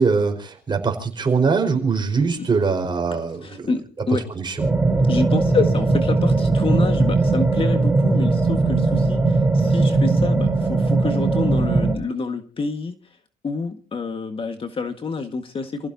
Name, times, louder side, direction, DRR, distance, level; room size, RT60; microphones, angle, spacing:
voice 1, 0.0-3.7 4.3-4.6, right 5 dB, 25° right, 6 dB, 4.8 m, -22 dB
voice 2, 3.1-4.2 5.1-13.0 13.4-15.9, left 4 dB, 30° left, 6 dB, 1.7 m, -27 dB
sound 1, 4.6-12.0, right 3 dB, 10° right, 3.8 m, -19 dB
29.0 x 16.0 x 2.8 m, 0.38 s
cardioid pair, 110°, 17 cm